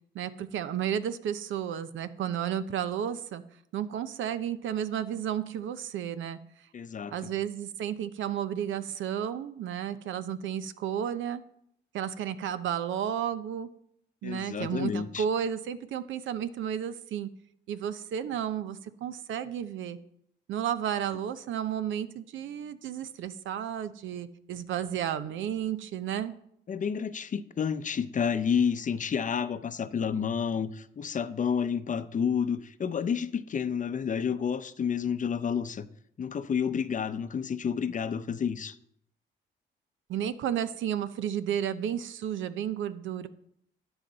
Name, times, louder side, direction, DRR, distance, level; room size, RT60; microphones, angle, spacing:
voice 1, 0.1-3.4 3.7-6.4 7.1-11.4 11.9-13.7 14.2-17.3 17.7-20.0 20.5-26.3 40.1-43.3, right 9 dB, 75° right, 0.7 m, -32 dB
voice 2, 6.7-7.3 14.2-15.2 26.7-35.9 36.2-38.8, left 7 dB, 40° left, 0.7 m, -30 dB
13.0 x 9.0 x 4.0 m
cardioid pair, 90°, 20 cm